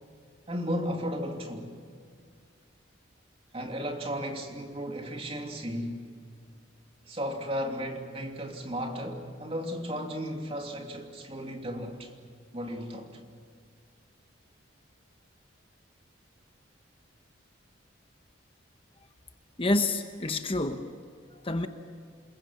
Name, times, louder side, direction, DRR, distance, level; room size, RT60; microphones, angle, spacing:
voice 1, 0.5-1.7 3.5-6.1 7.1-12.1 12.5-13.2, equal, 30° right, 2 dB, 2.8 m, -34 dB
voice 2, 19.6-20.9 21.4-21.7, left 2 dB, 30° left, 7 dB, 1.0 m, -28 dB
28.0 x 22.0 x 7.4 m, 2.2 s
head